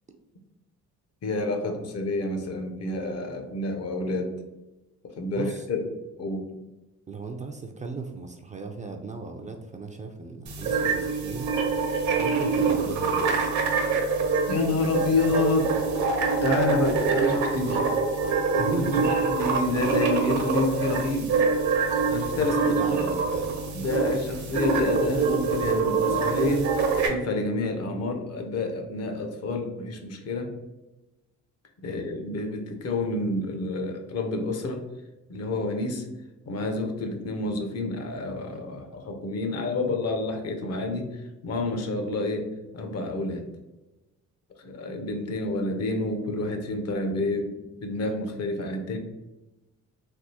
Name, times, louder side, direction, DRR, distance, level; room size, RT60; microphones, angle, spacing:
voice 1, 1.2-4.3 5.0-5.9 6.2-6.5 14.5-15.8 16.4-17.8 18.8-18.9 19.4-21.3 22.1-22.8 23.1-23.2 23.7-30.5 31.8-34.8 35.3-36.1 36.5-43.5 44.6-47.5 47.8-49.0, left 2 dB, 55° left, 5 dB, 0.7 m, -29 dB
voice 2, 5.3-5.7 7.1-11.5 12.2-13.5 18.6-19.2 22.4-23.5 31.8-32.1, right 3 dB, 25° right, 3 dB, 0.3 m, -36 dB
sound 1, 10.5-27.1, right 4 dB, 65° right, 0.8 m, -25 dB
3.5 x 2.4 x 2.7 m, 1.0 s
cardioid pair, 90°, 30 cm